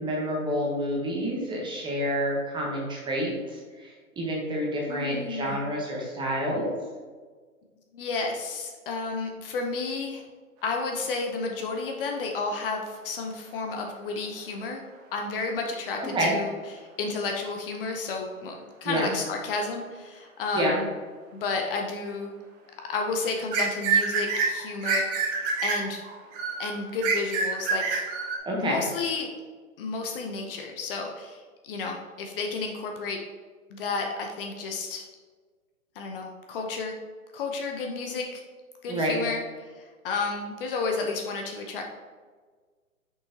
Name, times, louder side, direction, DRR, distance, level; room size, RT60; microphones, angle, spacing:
voice 1, 0.0-6.7 16.0-16.3 18.8-19.1 20.5-20.8 28.5-28.8 38.9-39.2, equal, 10° right, -2 dB, 1.0 m, -28 dB
voice 2, 4.9-5.6 7.9-10.2 10.6-14.8 15.1-20.8 21.3-22.3 22.9-26.0 26.6-28.0 28.6-29.3 29.8-33.2 33.7-35.1 36.0-37.0 37.3-38.4 38.8-41.9, left 4 dB, 40° left, 2 dB, 0.8 m, -32 dB
sound 1, 23.5-28.4, right 5 dB, 30° right, 1.2 m, -27 dB
6.2 x 5.7 x 2.9 m, 1.5 s
hypercardioid pair, 130°, 43 cm